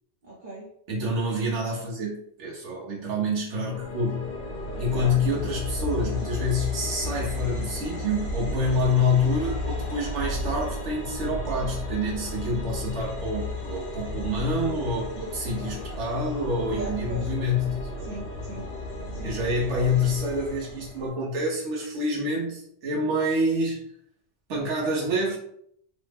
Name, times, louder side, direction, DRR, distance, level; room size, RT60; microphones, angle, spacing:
voice 1, 0.2-0.7 4.9-5.1 16.7-17.3 18.0-18.7 19.1-19.3, right 3 dB, 50° right, -5 dB, 0.8 m, -38 dB
voice 2, 0.9-4.3 4.8-18.1 19.2-23.8 24.5-25.4, left 1 dB, 80° right, -4 dB, 1.1 m, -27 dB
sound 1, 3.7-21.1, left 2 dB, 55° left, 1.2 m, -33 dB
3.2 x 2.1 x 3.3 m, 0.68 s
omnidirectional pair, 1.2 m